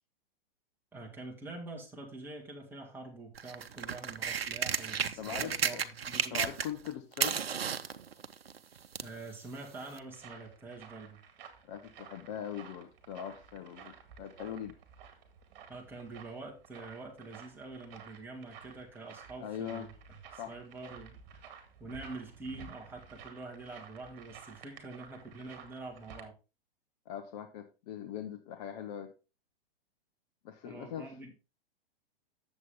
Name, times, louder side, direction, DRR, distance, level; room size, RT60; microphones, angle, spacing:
voice 1, 0.9-6.5 9.0-11.2 15.7-21.5 21.8-26.3 30.6-31.3, right 3 dB, 5° right, -2 dB, 2.1 m, -46 dB
sound 1, 3.3-6.9 7.1-9.2 10.0-10.1, right 7 dB, 80° right, 0.8 m, -33 dB
voice 2, 5.2-5.8 6.3-7.4 11.6-14.8 19.4-19.9 20.4-20.6 27.1-29.1 30.4-31.3, left 9 dB, 40° left, 7 dB, 1.0 m, -41 dB
sound 2, 9.5-26.3, right 7 dB, 50° right, 2.2 m, -53 dB
9.3 x 7.4 x 3.6 m, 0.30 s
hypercardioid pair, 115°, 29 cm